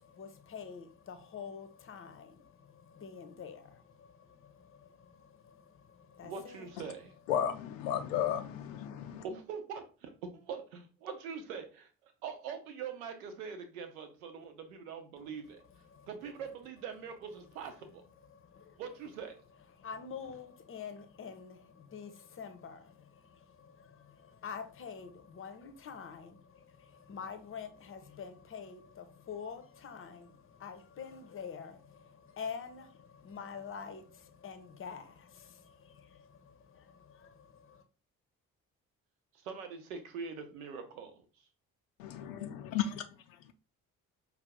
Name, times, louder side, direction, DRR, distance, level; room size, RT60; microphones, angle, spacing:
voice 1, 0.0-6.6 15.9-16.1 18.3-18.8 19.8-37.8, left 6 dB, 30° left, 0.8 m, -47 dB
voice 2, 6.2-7.1 9.2-15.6 16.1-18.0 18.8-19.4 39.4-41.2, right 6 dB, 70° right, 0.8 m, -43 dB
voice 3, 7.3-9.2 42.0-42.8, left 10 dB, 65° left, 0.5 m, -33 dB
5.3 x 2.4 x 3.5 m
figure-of-eight pair, 40°, 43 cm